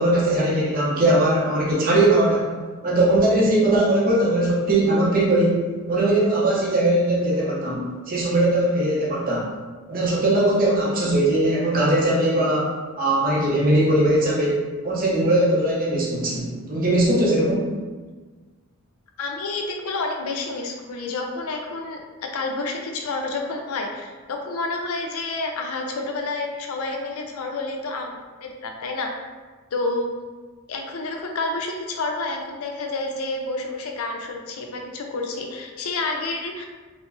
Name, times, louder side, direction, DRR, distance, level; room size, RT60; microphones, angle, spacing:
voice 1, 0.0-2.6 2.8-9.5 9.9-12.7 13.0-17.7, right 1 dB, 40° right, -5 dB, 0.6 m, -20 dB
voice 2, 19.2-22.0 22.3-28.1 28.4-29.3 29.7-30.1 30.7-36.7, left 3 dB, 75° left, 3 dB, 0.5 m, -29 dB
3.3 x 2.9 x 2.5 m, 1.4 s
head